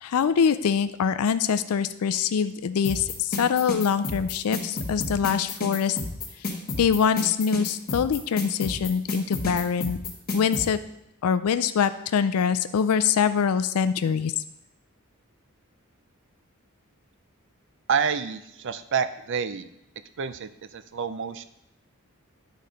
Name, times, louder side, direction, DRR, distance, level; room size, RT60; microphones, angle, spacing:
voice 1, 0.0-6.0 6.8-10.0 10.3-10.8 11.2-14.3, left 7 dB, 80° left, 12 dB, 0.4 m, -24 dB
sound 1, 2.8-10.6, left 3 dB, 45° left, 1.4 m, -30 dB
voice 2, 17.9-19.7 20.2-21.4, right 6 dB, 55° right, 12 dB, 0.5 m, -28 dB
10.5 x 4.2 x 5.0 m, 0.80 s
head